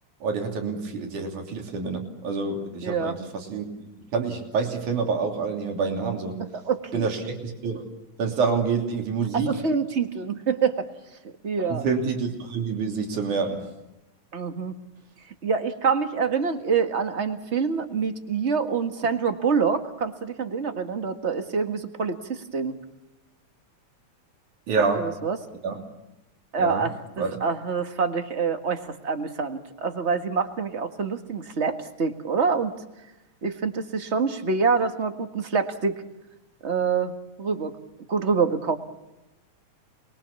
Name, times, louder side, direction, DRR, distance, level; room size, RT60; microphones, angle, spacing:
voice 1, 0.2-6.5 6.9-7.8 8.2-9.6 11.7-13.7 24.7-25.1 25.6-25.8 26.6-26.9 27.2-27.4, right 5 dB, 85° right, 3 dB, 4.4 m, -27 dB
voice 2, 2.8-3.1 6.5-7.1 9.3-10.8 11.4-11.8 14.3-14.7 15.4-22.7 24.9-25.4 26.5-32.7 33.4-36.0 36.6-37.1 37.4-37.7 38.1-38.8, right 5 dB, 30° right, 7 dB, 1.5 m, -26 dB
28.5 x 22.0 x 7.1 m, 0.96 s
omnidirectional pair, 3.4 m